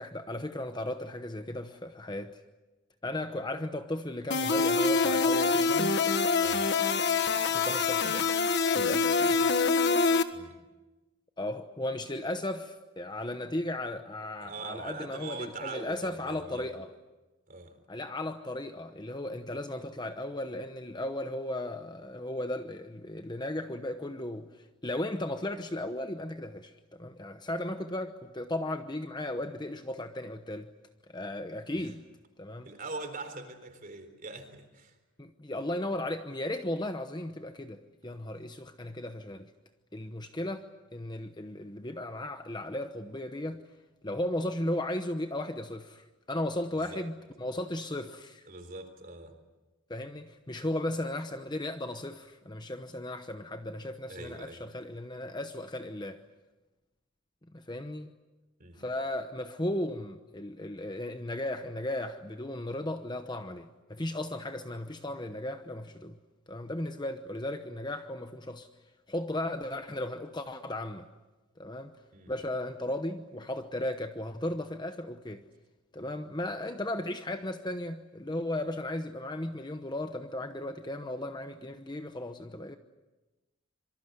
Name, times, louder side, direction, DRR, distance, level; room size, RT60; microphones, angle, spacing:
voice 1, 0.0-2.4 3.0-6.0 7.5-8.3 8.7-9.4 11.4-16.9 17.9-30.7 31.1-32.0 32.4-32.7 35.2-39.5 39.9-43.6 44.0-48.4 49.9-56.2 57.5-58.1 58.8-66.2 66.5-68.7 69.1-71.1 71.6-71.9 72.3-75.4 75.9-82.8, left 1 dB, 20° left, 8 dB, 0.9 m, -36 dB
sound 1, 4.3-10.2, left 4 dB, 50° left, 1.5 m, -25 dB
voice 2, 10.3-10.6 14.4-16.8 17.5-17.8 32.6-35.0 46.7-47.1 48.5-49.3 54.1-54.6 58.6-58.9 72.1-72.3, right 3 dB, 40° right, 7 dB, 3.8 m, -42 dB
26.5 x 24.5 x 8.1 m, 1.1 s
head